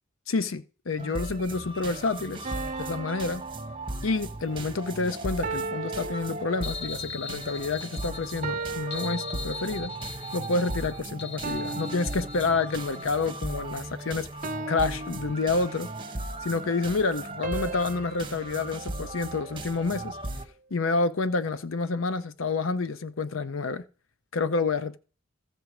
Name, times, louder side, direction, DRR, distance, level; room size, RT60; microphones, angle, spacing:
voice 1, 0.3-2.5 2.8-3.4 4.0-9.9 10.3-14.3 14.7-15.9 16.4-20.2 20.7-23.8 24.3-25.0, left 3 dB, 80° left, 0.7 m, -28 dB
sound 1, 1.0-20.5, right 2 dB, 25° right, 1.3 m, -37 dB
sound 2, 2.4-4.4 5.4-7.1 8.4-10.0 11.4-13.1 14.4-16.0 17.4-19.8, right 3 dB, 40° right, 0.8 m, -37 dB
sound 3, 6.6-13.3, left 6 dB, 60° left, 1.7 m, -41 dB
15.5 x 6.4 x 4.9 m
head